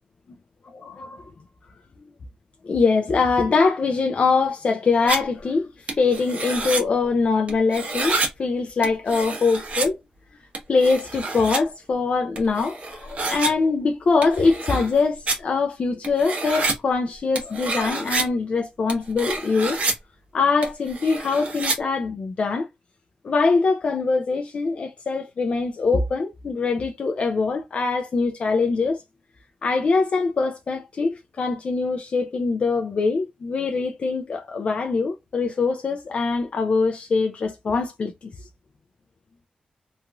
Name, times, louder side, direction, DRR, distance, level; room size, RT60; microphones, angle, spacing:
voice 1, 0.7-1.2 2.7-10.0 10.7-19.8 20.3-22.7 23.2-29.0 29.6-38.5, left 4 dB, 50° left, 0.4 m, -23 dB
sound 1, 5.1-5.2 5.9-6.8 7.5-8.3 8.8-9.9 10.5-11.6 12.4-13.5 14.2-15.0 15.3-15.4 16.0-16.7 17.3-18.2 18.9-19.9 20.6-21.8, right 3 dB, 55° right, 1.0 m, -27 dB
2.9 x 2.5 x 2.3 m
wide cardioid pair, 125°, 3 cm